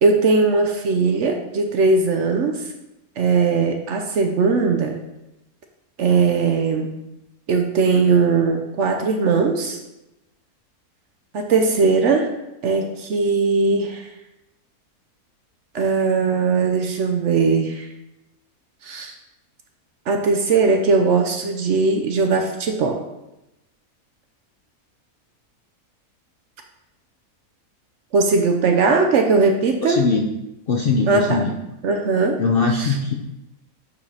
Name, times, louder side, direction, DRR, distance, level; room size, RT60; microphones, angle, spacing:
voice 1, 0.0-2.7 3.2-5.0 6.0-6.9 7.5-9.8 11.3-12.3 12.6-14.1 15.7-17.9 18.8-19.2 20.1-23.0 28.1-30.1 31.1-31.4 31.8-32.4 32.7-33.0, right 4 dB, 65° right, 3 dB, 0.8 m, -19 dB
voice 2, 29.8-30.3 30.7-31.5 32.4-33.1, left 4 dB, 60° left, 1 dB, 0.6 m, -20 dB
9.1 x 4.9 x 2.8 m, 0.94 s
omnidirectional pair, 1.6 m